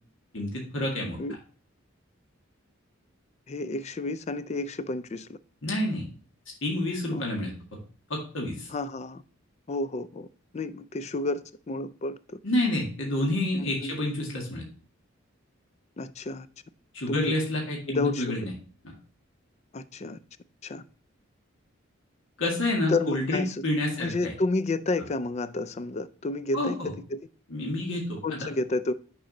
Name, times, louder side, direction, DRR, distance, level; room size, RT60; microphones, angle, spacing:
voice 1, 0.3-1.2 5.6-6.1 6.6-7.5 8.1-8.7 12.4-14.6 16.9-18.5 22.4-24.3 25.0-25.1 26.5-26.9 27.5-28.5, left 1 dB, 65° left, 1.9 m, -28 dB
voice 2, 3.5-5.4 7.1-7.3 8.7-9.2 9.7-10.3 10.5-12.4 13.6-13.9 16.0-16.5 17.1-17.4 17.9-18.4 19.7-20.2 20.6-20.8 22.9-23.6 24.0-27.3 28.2-28.9, left 2 dB, 30° left, 0.4 m, -31 dB
6.4 x 4.8 x 4.1 m
head